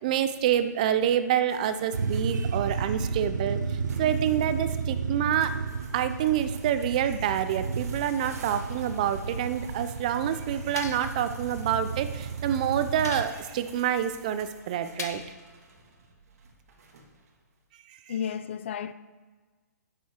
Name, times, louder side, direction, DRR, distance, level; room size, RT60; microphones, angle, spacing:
voice 1, 0.0-5.6 5.9-15.2, right 10 dB, 25° right, 0.3 m, -27 dB
sound 1, 1.5-17.4, right 3 dB, 55° right, 1.6 m, -50 dB
sound 2, 1.9-13.2, right 5 dB, 85° right, 0.7 m, -33 dB
sound 3, 10.8-11.2 13.0-13.7 15.0-15.4, left 6 dB, 60° left, 1.1 m, -39 dB
voice 2, 18.1-18.9, left 8 dB, 40° left, 0.4 m, -32 dB
10.5 x 7.3 x 4.3 m
hypercardioid pair, 165°, 10 cm